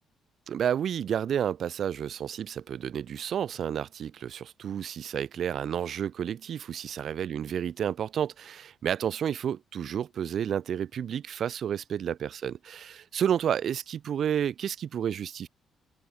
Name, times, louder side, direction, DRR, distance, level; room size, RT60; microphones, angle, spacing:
voice 1, 0.5-15.5, right 9 dB, 60° right, 1.5 m, -31 dB
cardioid pair, 90°, 0 cm